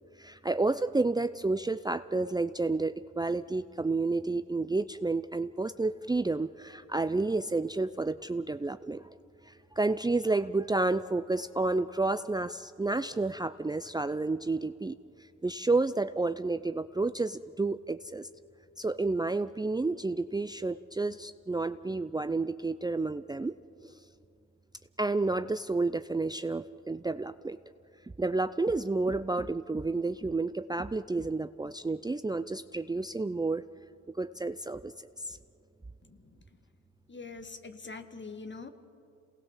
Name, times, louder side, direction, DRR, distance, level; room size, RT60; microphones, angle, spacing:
voice 1, 0.2-9.1 9.4-15.0 15.4-18.3 18.8-23.6 23.8-24.0 25.0-27.6 28.2-33.6 34.1-35.4, right 3 dB, 15° right, 12 dB, 0.6 m, -30 dB
voice 2, 36.0-36.4 37.1-38.7, left 4 dB, 40° left, 8 dB, 1.9 m, -44 dB
27.5 x 19.0 x 7.4 m, 2.5 s
supercardioid pair, 55°, 30 cm